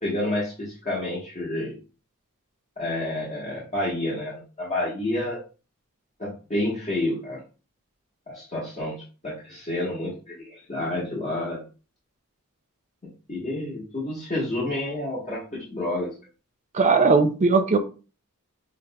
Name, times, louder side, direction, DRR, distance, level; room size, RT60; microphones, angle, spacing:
voice 1, 0.0-1.7 2.8-5.4 6.2-7.4 8.3-11.6 13.0-16.1, left 1 dB, 35° left, -7 dB, 1.3 m, -29 dB
voice 2, 16.7-17.8, right 4 dB, 30° right, 6 dB, 0.4 m, -18 dB
6.4 x 2.5 x 2.2 m, 0.35 s
head